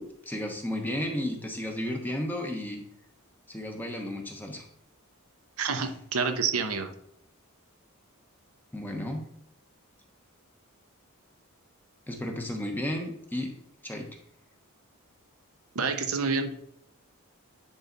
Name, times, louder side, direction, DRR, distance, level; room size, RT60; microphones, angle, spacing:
voice 1, 0.3-2.8 3.5-4.6 8.7-9.2 12.1-13.5 13.8-14.1, left 1 dB, 10° left, 2 dB, 1.1 m, -33 dB
voice 2, 5.6-6.9 15.7-16.5, right 5 dB, 80° right, 6 dB, 0.9 m, -28 dB
10.0 x 3.9 x 4.0 m, 0.74 s
head